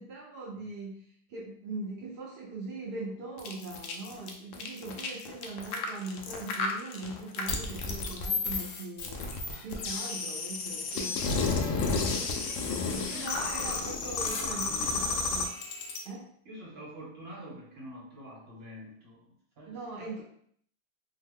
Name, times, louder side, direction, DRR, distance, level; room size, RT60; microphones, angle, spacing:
voice 1, 0.0-12.3 12.9-15.6 16.0-16.3 19.7-20.2, right 3 dB, 65° right, -4 dB, 0.6 m, -41 dB
sound 1, 3.4-16.0, left 4 dB, 90° left, 0.6 m, -32 dB
voice 2, 12.9-15.3 16.4-19.3 19.6-20.2, equal, 45° right, -5 dB, 1.0 m, -46 dB
3.0 x 2.1 x 3.5 m, 0.63 s
omnidirectional pair, 1.9 m